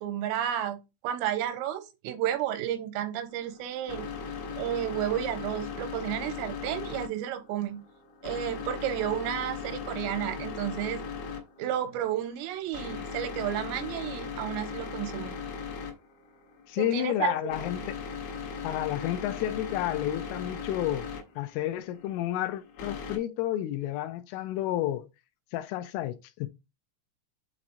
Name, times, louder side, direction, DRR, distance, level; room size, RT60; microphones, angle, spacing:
voice 1, 0.0-4.1 4.6-7.8 8.2-11.0 11.6-15.4 16.8-17.9, right 11 dB, 90° right, 3.4 m, -32 dB
sound 1, 3.3-23.2, left 6 dB, 65° left, 2.9 m, -39 dB
voice 2, 16.7-18.0 18.6-21.1 21.4-25.1 25.5-26.5, left 13 dB, 85° left, 3.2 m, -31 dB
8.5 x 3.1 x 3.9 m
omnidirectional pair, 5.9 m